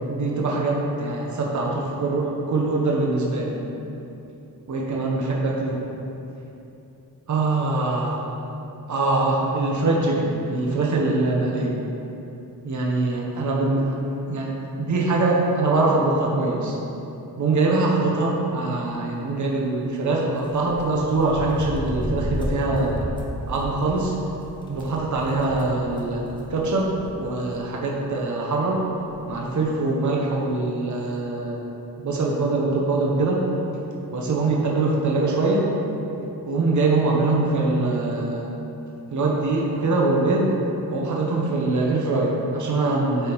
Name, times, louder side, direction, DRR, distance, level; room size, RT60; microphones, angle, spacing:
voice 1, 0.1-3.5 4.7-5.8 7.3-8.2 8.9-11.7 12.6-14.0 14.3-16.8 17.4-23.1 23.5-24.1 24.7-26.2 26.5-28.8 29.3-31.6 32.0-33.4 34.1-35.7 36.4-38.5 39.1-40.5 40.9-43.3, right 2 dB, 50° right, -2 dB, 1.0 m, -23 dB
sound 1, 20.4-27.2 27.5-27.6 28.7-28.8 29.1-29.3, equal, 10° left, 0.8 m, -33 dB
8.9 x 3.6 x 4.6 m, 2.9 s
wide cardioid pair, 160°, 38 cm